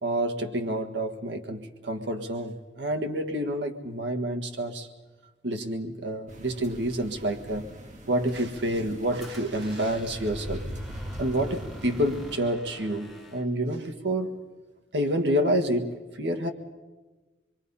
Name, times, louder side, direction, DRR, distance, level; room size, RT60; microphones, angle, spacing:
voice 1, 0.0-4.9 5.4-7.7 8.1-10.6 11.2-14.4 14.9-16.5, right 1 dB, 80° right, 4 dB, 1.7 m, -28 dB
sound 1, 6.3-12.4, equal, 40° right, 1.9 m, -40 dB
Squeak, 8.2-13.5, left 1 dB, ahead, 1.8 m, -50 dB
26.5 x 22.5 x 5.6 m, 1.2 s
head